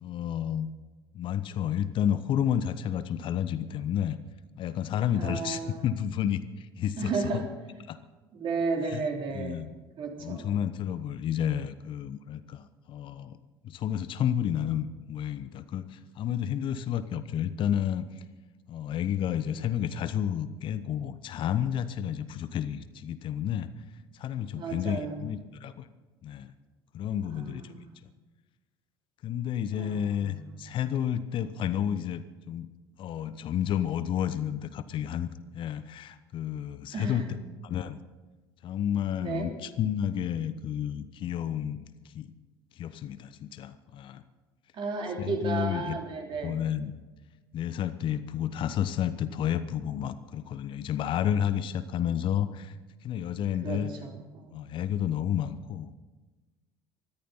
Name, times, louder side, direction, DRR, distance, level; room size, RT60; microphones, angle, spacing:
voice 1, 0.0-0.7 1.1-4.2 4.6-7.4 7.9-8.0 8.9-9.1 9.3-9.7 10.2-13.4 13.6-18.2 18.7-23.7 24.1-25.9 26.2-26.5 26.9-28.1 29.2-32.7 33.0-37.4 37.6-38.0 38.6-41.8 42.1-42.3 42.8-44.2 45.2-46.0 46.4-46.9 47.5-52.7 53.0-53.9 54.5-55.9, left 10 dB, 45° left, 13 dB, 1.0 m, -31 dB
voice 2, 5.1-5.9 7.0-7.5 8.3-9.7 10.0-10.6 24.5-25.2 27.3-27.9 29.7-30.5 36.9-37.3 39.2-39.5 44.7-46.5 53.6-54.7, right 4 dB, 40° right, 1 dB, 3.7 m, -33 dB
20.5 x 14.0 x 4.1 m, 1.2 s
figure-of-eight pair, 65°, 12 cm